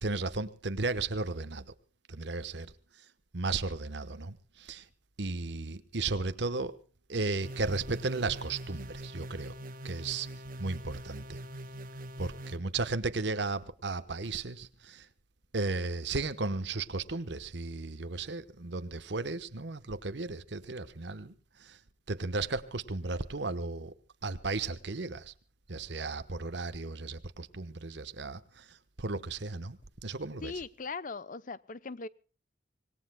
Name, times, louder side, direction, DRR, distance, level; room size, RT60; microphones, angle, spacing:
voice 1, 0.0-1.6 2.1-2.7 3.3-4.8 5.2-6.8 7.1-9.5 9.8-10.3 10.6-11.4 12.2-15.1 15.5-21.3 21.6-21.8 22.1-23.9 24.2-25.3 25.7-28.6 29.0-29.8 30.0-30.5, right 3 dB, 65° right, 1.1 m, -34 dB
sound 1, 7.4-12.6, right 1 dB, 50° right, 1.4 m, -43 dB
voice 2, 30.4-32.1, left 4 dB, 45° left, 0.7 m, -39 dB
26.0 x 19.5 x 2.2 m
head